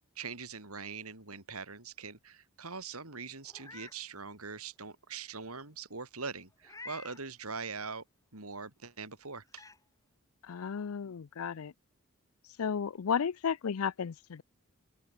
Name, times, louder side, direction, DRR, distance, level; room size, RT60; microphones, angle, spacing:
voice 1, 0.2-8.0 8.3-9.6, right 5 dB, 80° right, 4.3 m, -42 dB
Meow, 3.4-4.0 4.5-4.6 6.6-7.2 8.8-8.9 9.5-9.8, left 3 dB, 15° left, 7.8 m, -49 dB
voice 2, 10.4-11.7 12.6-14.4, left 7 dB, 75° left, 0.5 m, -33 dB
open air
head